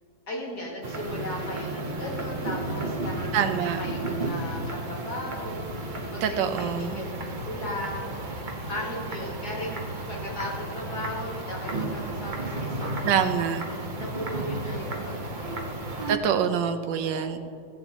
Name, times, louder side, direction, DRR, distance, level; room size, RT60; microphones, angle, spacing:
voice 1, 0.3-7.1 7.4-8.4 8.7-9.7 10.1-13.3 13.7-16.1 17.0-17.4, left 1 dB, 55° left, -4 dB, 2.7 m, -37 dB
sound 1, 0.8-16.2, right 2 dB, 35° right, 0.8 m, -33 dB
voice 2, 3.3-3.8 6.2-7.0 13.0-13.6 16.1-17.4, right 8 dB, 75° right, 8 dB, 1.4 m, -25 dB
15.0 x 8.7 x 4.1 m, 2.5 s
omnidirectional pair, 2.0 m